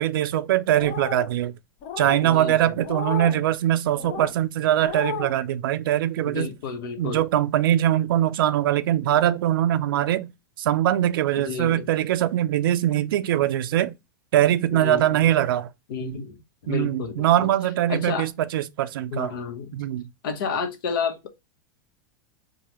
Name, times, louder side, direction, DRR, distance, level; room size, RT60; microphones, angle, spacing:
voice 1, 0.0-1.5 2.0-6.5 7.0-10.3 10.6-13.9 14.3-15.7 16.0-16.2 16.7-19.3 19.7-20.1, right 12 dB, 85° right, 0.4 m, -22 dB
sound 1, 0.7-1.3 1.8-2.2 2.8-3.4 4.0-4.3 4.8-5.3, left 7 dB, 50° left, 0.7 m, -33 dB
voice 2, 2.2-2.8 6.2-7.2 11.4-11.9 14.7-15.2 15.9-16.3 16.6-17.5 17.9-18.3 19.1-19.8 20.2-21.3, left 5 dB, 75° left, 1.0 m, -31 dB
4.7 x 2.2 x 2.9 m
supercardioid pair, 145°, 11 cm